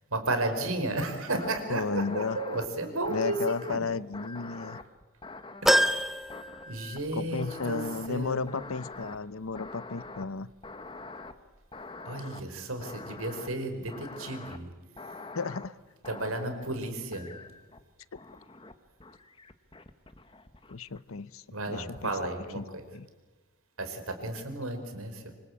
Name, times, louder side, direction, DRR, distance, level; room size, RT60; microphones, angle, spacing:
voice 1, 0.1-3.8 5.6-6.0 6.7-8.4 12.0-14.7 16.1-17.3 21.5-22.8 23.8-25.3, right 2 dB, 85° right, 7 dB, 4.8 m, -33 dB
sound 1, 1.3-1.6 2.0-2.7 3.0-3.8 4.1-6.0 6.3-7.1 7.4-8.1 8.5-9.2 9.5-10.2 10.6-11.3 11.7-12.4 12.8-13.5 13.9-14.6 15.0-15.7 16.0-16.7 17.1-17.8 18.2-18.7 19.0-21.0, left 3 dB, 25° left, 1.4 m, -44 dB
voice 2, 1.7-2.4 3.1-4.8 7.1-10.5 15.3-15.7 20.7-22.6 22.9-23.1, left 4 dB, 80° left, 18 dB, 0.8 m, -33 dB
sound 2, 5.7-7.3 7.7-7.8 9.0-9.1, equal, ahead, 0.9 m, -27 dB
26.0 x 25.0 x 8.6 m, 1.2 s
head